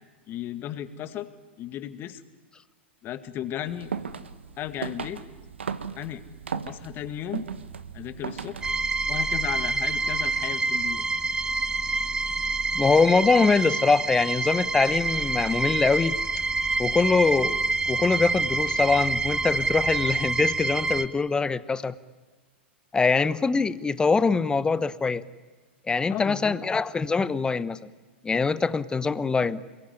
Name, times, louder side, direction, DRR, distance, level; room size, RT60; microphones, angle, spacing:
voice 1, 0.3-1.3 1.6-2.2 3.0-3.9 4.6-5.3 6.0-6.2 6.7-7.5 7.9-8.6 9.1-11.1 26.1-26.6, left 11 dB, 35° left, 10 dB, 2.0 m, -35 dB
sound 1, 3.7-8.9, right 6 dB, 80° right, 1.5 m, -36 dB
sound 2, 8.6-21.1, right 3 dB, 10° right, 1.3 m, -27 dB
voice 2, 12.7-16.2 16.8-17.6 17.9-21.9 22.9-25.2 25.9-27.8 28.2-29.6, left 4 dB, 15° left, 15 dB, 1.1 m, -23 dB
27.5 x 22.0 x 9.8 m, 1.3 s
figure-of-eight pair, 95°, 6 cm